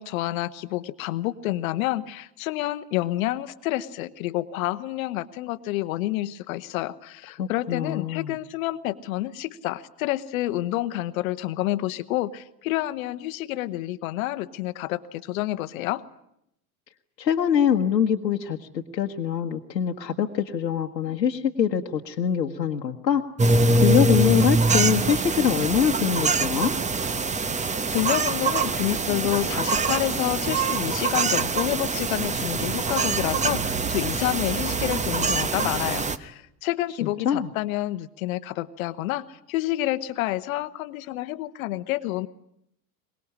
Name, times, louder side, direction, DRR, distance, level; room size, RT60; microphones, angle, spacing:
voice 1, 0.0-16.0 27.9-42.3, left 16 dB, 55° left, 13 dB, 1.1 m, -29 dB
voice 2, 7.4-8.3 17.2-23.2 23.7-26.7 37.0-37.5, left 8 dB, 80° left, 2 dB, 1.3 m, -24 dB
sound 1, 23.4-36.2, right 3 dB, 15° right, 1.1 m, -24 dB
23.5 x 21.0 x 9.9 m, 0.77 s
figure-of-eight pair, 85°, 50 cm